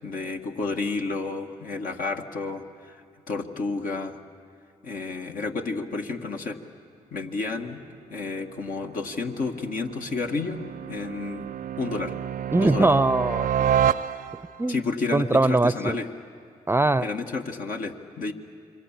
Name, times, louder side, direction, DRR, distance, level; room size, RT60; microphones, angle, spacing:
voice 1, 0.0-3.0 3.3-4.2 4.8-6.6 7.1-7.8 8.1-10.6 10.9-11.5 11.8-12.1 12.6-12.9 14.7-16.1 17.0-18.3, left 3 dB, 65° left, 3 dB, 1.8 m, -31 dB
sound 1, 8.2-14.7, right 9 dB, 65° right, 0.6 m, -29 dB
voice 2, 12.5-13.7 14.6-14.8 15.1-16.0 16.7-17.1, right 2 dB, 15° right, 17 dB, 0.6 m, -21 dB
27.0 x 24.0 x 7.4 m, 2.3 s
hypercardioid pair, 40°, 15 cm